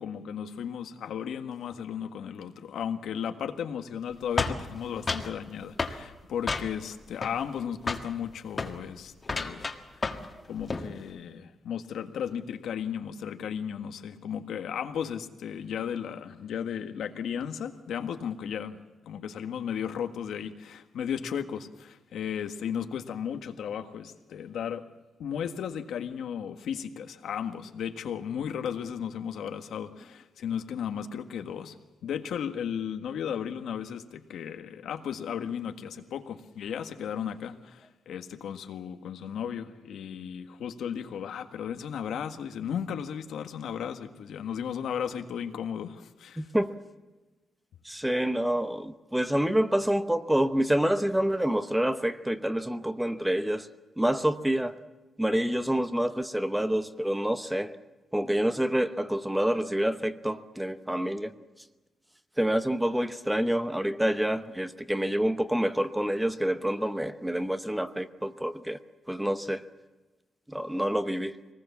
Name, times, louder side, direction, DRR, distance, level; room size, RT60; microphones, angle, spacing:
voice 1, 0.0-9.7 10.0-10.2 10.5-18.8 19.1-24.8 25.2-31.8 32.0-46.5, left 8 dB, 85° left, 1.6 m, -35 dB
sound 1, 4.4-5.3 5.8-6.0 6.5-6.9 7.2-7.6 7.9-8.1 8.5-8.8 9.2-10.3 10.6-10.9, left 3 dB, 25° left, 1.6 m, -31 dB
voice 2, 46.4-46.8 47.8-53.7 54.0-54.8 55.2-57.7 58.1-61.3 62.4-68.8 69.1-69.6 70.5-71.4, right 1 dB, 5° right, 0.8 m, -27 dB
24.5 x 19.5 x 7.3 m
wide cardioid pair, 175°, 0 cm